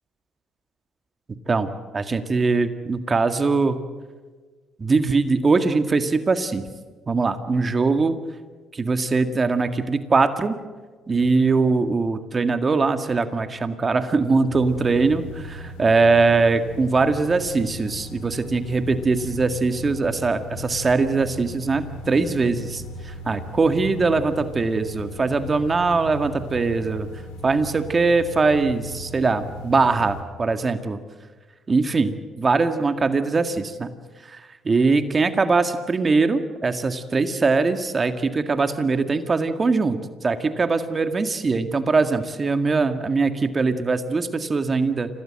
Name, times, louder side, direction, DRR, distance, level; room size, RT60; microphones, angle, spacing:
voice 1, 1.5-3.8 4.8-6.7 7.1-8.2 8.7-10.6 11.1-27.1 27.4-31.0 31.7-33.9 34.2-45.1, right 4 dB, 35° right, 9 dB, 1.9 m, -21 dB
sound 1, 14.5-30.2, left 1 dB, 90° left, 3.2 m, -37 dB
26.5 x 18.0 x 7.8 m, 1.4 s
supercardioid pair, 65°, 0 cm